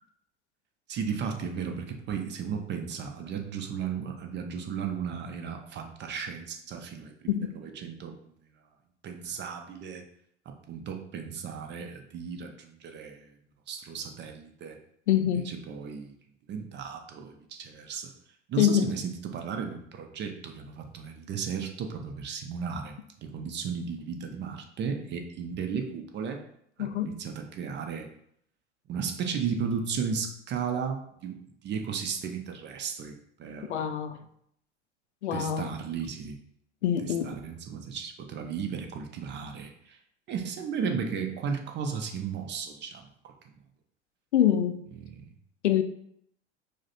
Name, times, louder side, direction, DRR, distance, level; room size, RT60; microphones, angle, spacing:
voice 1, 0.9-8.4 9.0-10.0 10.5-13.3 13.7-14.8 15.2-16.2 16.5-18.1 18.5-26.4 26.8-28.1 28.9-31.4 31.6-33.8 35.3-36.4 37.2-40.0 40.3-43.3 45.0-45.3, right 6 dB, 30° right, 0.7 m, -35 dB
voice 2, 15.1-15.5 18.6-18.9 26.8-27.1 33.7-34.2 35.2-35.7 36.8-37.4 44.3-44.8 45.6-45.8, left 10 dB, 75° left, 0.5 m, -25 dB
4.9 x 2.2 x 4.1 m
figure-of-eight pair, 75°, 35 cm